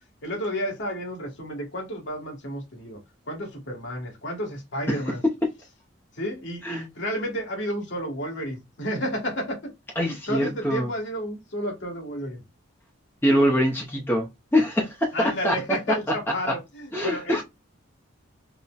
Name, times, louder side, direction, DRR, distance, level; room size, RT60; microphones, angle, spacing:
voice 1, 0.2-3.0 3.3-5.2 6.1-9.6 10.0-12.4 15.1-17.4, equal, 65° left, 1.4 m, -31 dB
voice 2, 10.0-10.9 13.2-16.2 16.4-16.5 16.9-17.4, equal, 10° left, 0.5 m, -24 dB
4.0 x 2.0 x 2.2 m
head